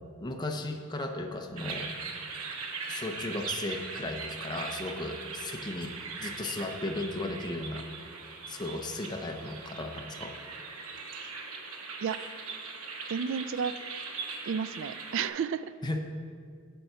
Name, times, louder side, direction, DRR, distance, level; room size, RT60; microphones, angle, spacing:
voice 1, 0.2-1.9 2.9-7.9 8.5-10.4 15.8-16.0, left 2 dB, 20° left, 4 dB, 0.6 m, -35 dB
sound 1, 1.6-15.3, right 4 dB, 85° right, 1.0 m, -40 dB
voice 2, 13.1-13.7 14.5-15.7, right 7 dB, 60° right, 15 dB, 0.3 m, -32 dB
7.8 x 7.0 x 5.6 m, 2.1 s
head